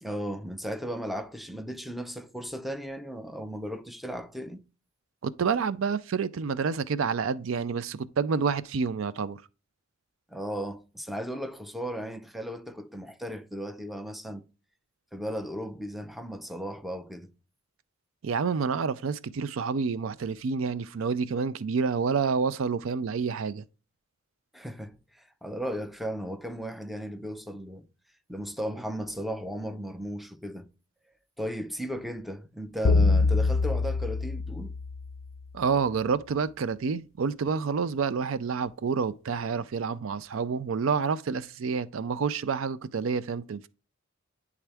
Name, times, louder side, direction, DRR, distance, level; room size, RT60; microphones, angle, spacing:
voice 1, 0.0-4.6 10.3-14.4 15.1-17.3 24.5-27.8 28.3-30.7 31.4-34.7, equal, ahead, 0.6 m, -36 dB
voice 2, 5.2-9.4 18.2-23.6 35.5-43.7, right 5 dB, 70° right, 0.4 m, -28 dB
sound 1, 32.8-35.3, left 3 dB, 75° left, 0.5 m, -24 dB
10.0 x 3.6 x 3.4 m
head